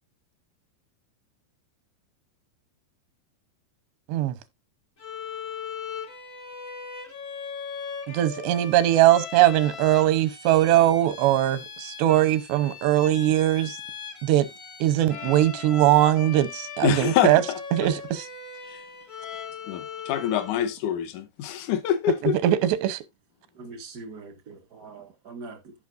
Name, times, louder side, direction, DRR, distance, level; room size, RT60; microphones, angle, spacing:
Bowed string instrument, 5.0-20.8, left 6 dB, 50° left, 0.9 m, -39 dB
voice 1, 8.1-13.8 14.2-14.5 14.8-17.4 17.7-18.3 22.4-23.0, right 13 dB, 90° right, 3.1 m, -21 dB
voice 2, 16.8-17.6 18.7-18.8 19.7-22.4, left 10 dB, 75° left, 1.9 m, -25 dB
voice 3, 23.6-25.7, right 3 dB, 55° right, 1.0 m, -42 dB
14.5 x 5.6 x 2.5 m
omnidirectional pair, 4.8 m